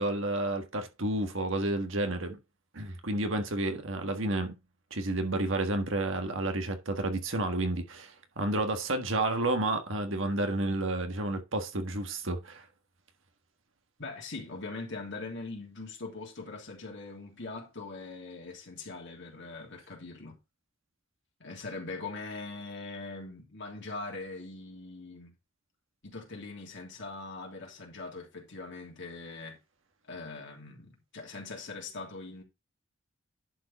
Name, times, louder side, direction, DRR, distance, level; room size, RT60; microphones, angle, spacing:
voice 1, 0.0-2.4 2.7-4.5 4.9-12.6, right 2 dB, 65° right, 1.6 m, -31 dB
voice 2, 14.0-20.4 21.4-25.3 26.0-29.6 30.1-32.4, left 3 dB, 60° left, 3.0 m, -41 dB
11.0 x 4.9 x 4.1 m
head